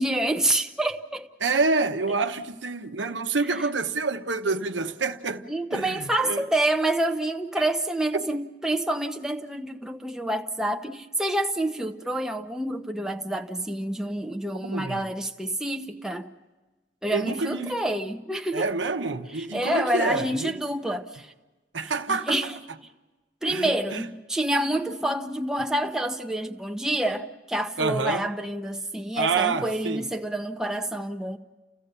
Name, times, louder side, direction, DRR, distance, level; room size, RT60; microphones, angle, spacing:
voice 1, 0.0-1.3 3.6-3.7 5.5-16.3 17.0-18.7 19.3-21.3 22.1-22.6 23.4-31.4, right 1 dB, 5° right, 0.7 m, -28 dB
voice 2, 1.4-6.4 8.1-8.2 14.6-15.0 17.1-17.8 18.5-20.6 21.7-22.5 23.5-24.1 27.8-28.3 29.2-30.1, right 4 dB, 80° right, 1.0 m, -27 dB
29.5 x 15.5 x 6.8 m
head